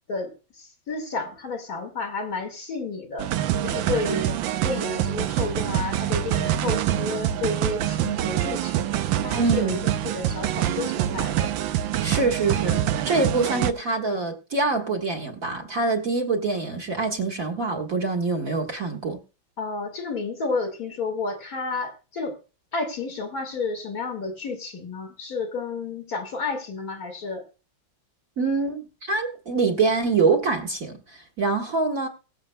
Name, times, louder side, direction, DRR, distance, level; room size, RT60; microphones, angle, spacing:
voice 1, 0.1-3.3 3.6-4.4 4.6-8.9 9.2-9.8 10.0-11.5 19.6-22.4 22.7-27.4, left 4 dB, 50° left, 2.4 m, -31 dB
sound 1, 3.2-13.7, right 11 dB, 80° right, 1.4 m, -25 dB
voice 2, 9.4-9.8 12.0-19.2 28.4-32.1, right 3 dB, 45° right, 1.8 m, -25 dB
22.0 x 7.5 x 2.2 m
omnidirectional pair, 2.1 m